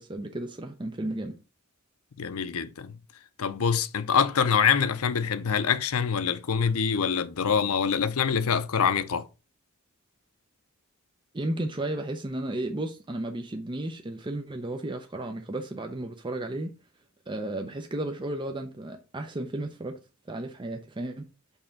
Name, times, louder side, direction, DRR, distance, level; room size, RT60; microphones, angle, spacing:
voice 1, 0.0-1.4 11.3-16.7 17.3-20.0 20.3-21.3, right 1 dB, 20° right, 0.6 m, -33 dB
voice 2, 2.2-3.0 3.4-9.3, left 6 dB, 80° left, 0.6 m, -25 dB
5.5 x 4.2 x 5.8 m
head